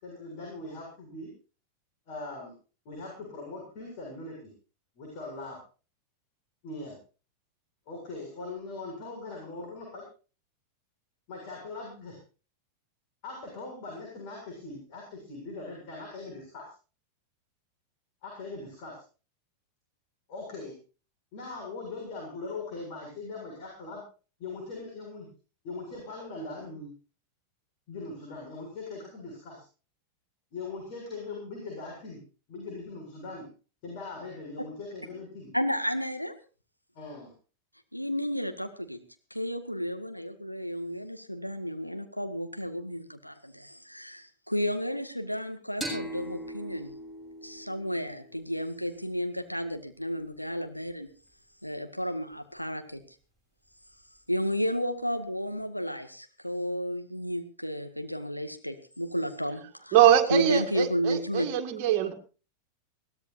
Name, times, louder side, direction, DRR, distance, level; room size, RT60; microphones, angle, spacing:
voice 1, 0.0-1.3 2.1-2.5 2.9-4.5 5.0-5.6 6.6-7.0 7.9-10.0 11.3-12.2 13.2-16.7 18.2-19.0 20.3-20.7 21.3-24.0 24.4-25.3 25.6-26.9 27.9-29.6 30.5-32.2 32.5-33.5 33.8-35.5 36.9-37.3, left 3 dB, 45° left, 7.3 m, -40 dB
voice 2, 35.5-36.3 37.9-39.0 39.3-46.9 47.4-51.1 51.6-53.0 54.3-60.0 60.3-61.5, equal, 90° left, 1.9 m, -32 dB
sound 1, 45.8-49.2, equal, 10° left, 6.6 m, -40 dB
voice 3, 59.9-62.1, right 11 dB, 45° right, 1.8 m, -23 dB
21.5 x 16.5 x 2.7 m
figure-of-eight pair, 90°, 0 cm